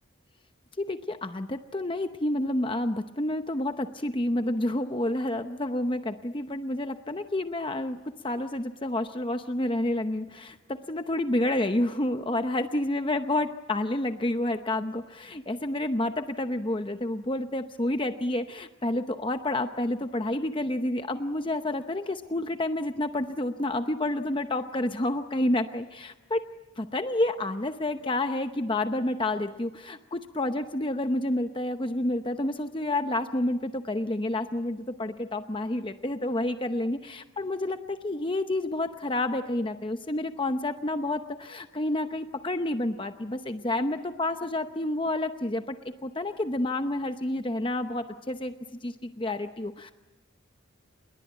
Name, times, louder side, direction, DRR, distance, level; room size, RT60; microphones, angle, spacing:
voice 1, 0.8-8.0 8.2-26.5 26.8-48.5 48.8-49.9, left 1 dB, 25° left, 8 dB, 0.8 m, -29 dB
28.0 x 21.5 x 9.1 m, 1.1 s
head